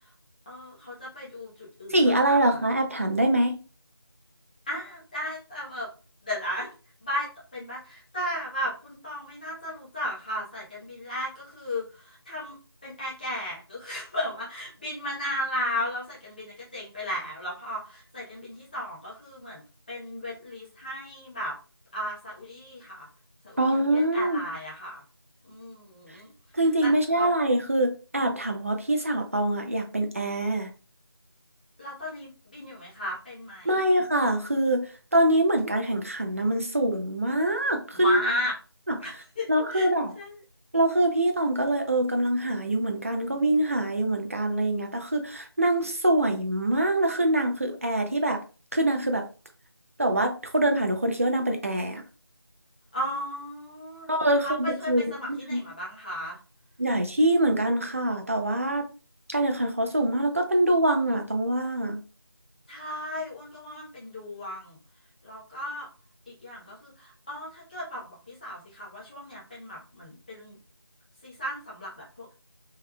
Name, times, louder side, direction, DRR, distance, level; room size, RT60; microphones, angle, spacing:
voice 1, 0.4-2.4 4.7-5.9 6.2-6.7 7.0-21.5 21.9-23.1 23.4-25.0 25.4-26.3 26.8-27.3 31.8-33.9 37.9-38.5 39.0-39.9 40.1-40.4 52.9-56.4 62.7-64.8 65.2-65.9 66.3-70.6 71.2-72.3, left 1 dB, 20° left, 1.1 m, -35 dB
voice 2, 1.9-3.6 23.6-24.4 26.5-30.7 33.6-38.2 38.9-39.0 39.5-40.1 40.7-48.4 48.7-49.2 50.0-52.0 54.1-55.0 55.5-55.6 56.8-58.9 59.3-62.0, right 1 dB, 35° right, 0.5 m, -24 dB
3.4 x 3.3 x 2.3 m
figure-of-eight pair, 170°, 13 cm